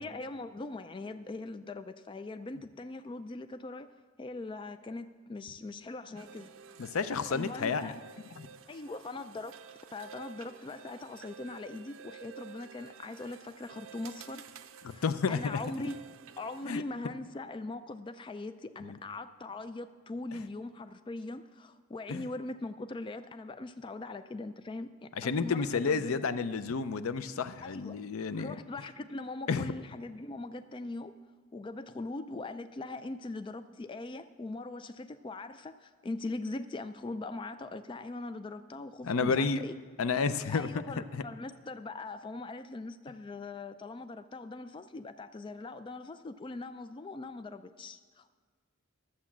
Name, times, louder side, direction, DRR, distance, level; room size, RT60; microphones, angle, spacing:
voice 1, 0.0-3.9 4.2-6.5 7.3-7.9 8.7-9.5 9.9-14.4 14.9-16.0 16.4-26.2 27.6-28.0 28.4-31.1 31.5-39.7 40.5-48.3, left 2 dB, 25° left, 11 dB, 0.3 m, -41 dB
sound 1, 6.1-16.7, right 7 dB, 70° right, 0.6 m, -52 dB
voice 2, 6.8-7.9 8.4-8.5 14.8-15.6 16.7-16.8 18.8-19.0 22.1-22.2 25.2-28.6 29.5-29.7 39.0-39.6 40.0-40.7 41.1-41.2, left 5 dB, 75° left, 13 dB, 0.5 m, -31 dB
11.5 x 7.4 x 7.3 m, 1.5 s
head